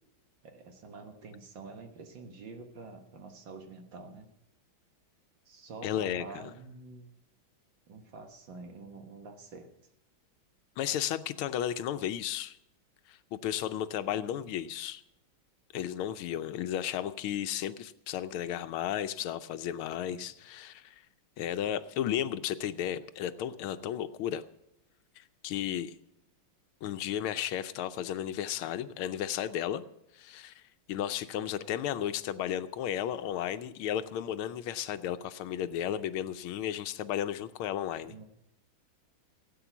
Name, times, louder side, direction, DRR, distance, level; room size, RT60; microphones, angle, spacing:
voice 1, 0.4-4.3 5.5-7.1 7.9-9.7 20.1-20.3 38.1-38.3, right 3 dB, 65° right, 5 dB, 2.1 m, -47 dB
voice 2, 5.8-6.5 10.8-12.6 13.1-15.0 15.7-20.9 21.4-24.4 25.2-25.9 26.8-29.8 30.1-30.6 30.9-38.1, left 10 dB, 90° left, 12 dB, 1.6 m, -34 dB
17.0 x 8.6 x 6.0 m, 0.82 s
omnidirectional pair, 2.3 m